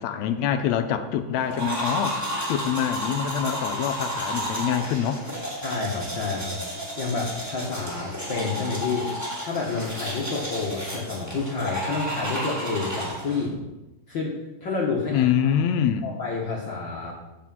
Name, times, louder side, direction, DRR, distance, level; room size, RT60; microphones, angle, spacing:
voice 1, 0.0-5.2 15.1-16.1, left 9 dB, 80° left, 8 dB, 1.6 m, -25 dB
sound 1, 1.5-13.5, equal, 5° right, 2.0 m, -32 dB
voice 2, 5.6-6.6 7.0-9.1 9.4-13.6 14.1-14.3 14.6-15.5 16.0-17.1, left 4 dB, 55° left, -3 dB, 1.3 m, -29 dB
8.3 x 5.0 x 7.4 m, 1.0 s
omnidirectional pair, 3.5 m